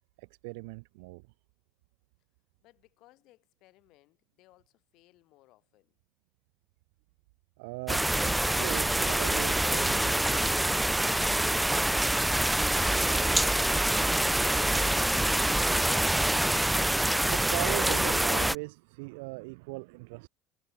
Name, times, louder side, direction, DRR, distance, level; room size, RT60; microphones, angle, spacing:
voice 1, 0.2-1.2 7.6-10.4 16.8-20.3, right 28 dB, 85° right, 0.6 m, -39 dB
voice 2, 2.6-6.0, left 18 dB, 65° left, 6.0 m, -63 dB
sound 1, 7.9-18.6, right 1 dB, 5° right, 0.4 m, -26 dB
supercardioid pair, 100°, 0 cm